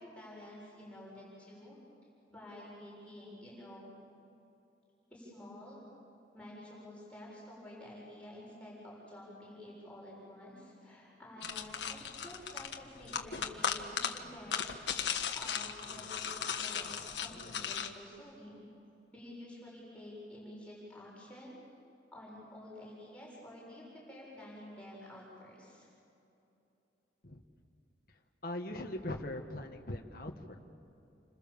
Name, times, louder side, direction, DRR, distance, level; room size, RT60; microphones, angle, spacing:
voice 1, 0.0-1.8 2.3-3.9 5.1-5.8 6.3-18.7 19.1-21.6 22.1-25.9, left 1 dB, 5° left, -5 dB, 7.0 m, -50 dB
sound 1, 11.4-17.9, left 7 dB, 85° left, 1.6 m, -37 dB
voice 2, 28.4-30.6, left 1 dB, 55° left, 2 dB, 1.7 m, -40 dB
29.5 x 26.5 x 7.2 m, 2.8 s
head